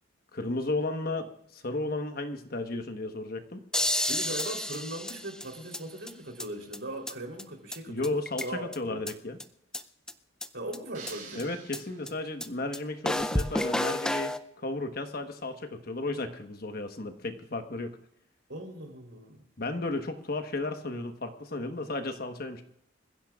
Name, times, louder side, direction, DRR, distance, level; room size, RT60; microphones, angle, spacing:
voice 1, 0.3-3.6 7.9-9.4 11.3-17.9 19.6-22.6, left 2 dB, 50° left, 6 dB, 1.2 m, -34 dB
sound 1, 3.7-5.8 6.1-6.2 6.4-6.5 6.7-6.8 7.1-7.2 7.4-7.5 7.7-7.8 8.0-8.8 9.1-9.2 9.4-9.5 9.7-9.8 10.1-10.2 10.4-10.5 10.7-10.8 11.1-11.2 11.4-11.5 11.7-11.8 12.1-12.2 12.4-12.5 12.7-12.8 13.1-14.4, left 1 dB, 5° left, 0.4 m, -30 dB
voice 2, 4.1-8.2 8.4-9.0 10.5-11.4 18.5-19.4, right 1 dB, 65° right, 2 dB, 3.5 m, -39 dB
sound 2, 10.9-12.5, right 5 dB, 40° right, 4.2 m, -47 dB
26.0 x 16.0 x 2.4 m, 0.76 s
head